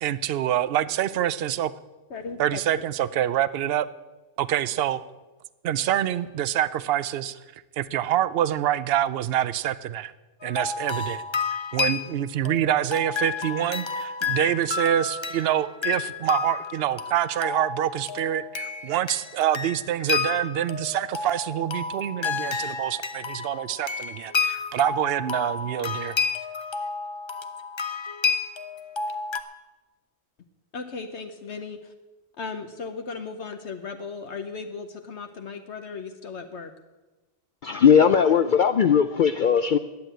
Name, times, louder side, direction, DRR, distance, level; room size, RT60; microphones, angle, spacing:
voice 1, 0.0-1.7 2.4-3.9 4.4-5.0 5.6-7.4 7.8-10.1 10.4-11.2 11.7-26.2, right 11 dB, 60° right, 16 dB, 0.7 m, -26 dB
voice 2, 2.1-2.9 30.7-31.8 32.4-36.7, left 4 dB, 60° left, 6 dB, 1.1 m, -36 dB
sound 1, 10.4-29.4, left 5 dB, 30° left, 0.5 m, -30 dB
voice 3, 37.6-39.8, left 7 dB, 90° left, 11 dB, 0.4 m, -18 dB
11.5 x 8.0 x 9.0 m, 1.2 s
omnidirectional pair, 1.4 m